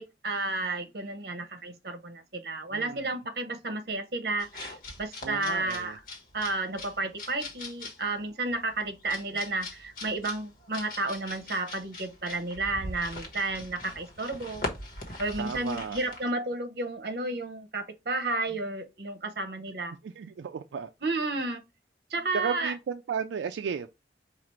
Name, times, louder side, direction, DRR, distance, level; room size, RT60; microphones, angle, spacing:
voice 1, 0.0-6.0 6.3-14.6 15.2-20.0 21.0-21.6 22.1-22.7, right 2 dB, 60° right, 0.8 m, -32 dB
voice 2, 2.7-3.1 5.2-6.0 15.4-16.0 20.0-20.9 22.3-23.9, right 6 dB, 90° right, 0.4 m, -34 dB
sound 1, 4.4-16.3, left 1 dB, 50° left, 1.3 m, -42 dB
4.9 x 2.4 x 4.4 m
head